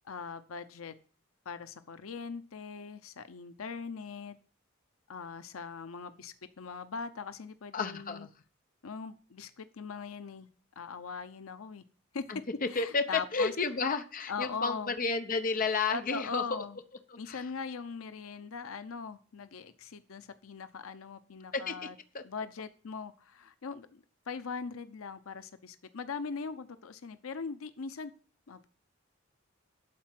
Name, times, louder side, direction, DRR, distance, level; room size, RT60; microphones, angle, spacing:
voice 1, 0.0-0.9 1.5-4.4 5.1-8.3 8.8-10.5 10.8-11.8 12.1-13.5 14.3-15.0 15.9-16.8 17.2-22.0 22.2-28.1 28.5-28.7, left 5 dB, 90° left, 12 dB, 0.7 m, -40 dB
voice 2, 7.7-8.3 12.3-16.6 17.3-17.4 21.5-21.8 22.1-22.2, left 4 dB, 45° left, 8 dB, 0.9 m, -31 dB
12.0 x 4.3 x 7.5 m, 0.42 s
head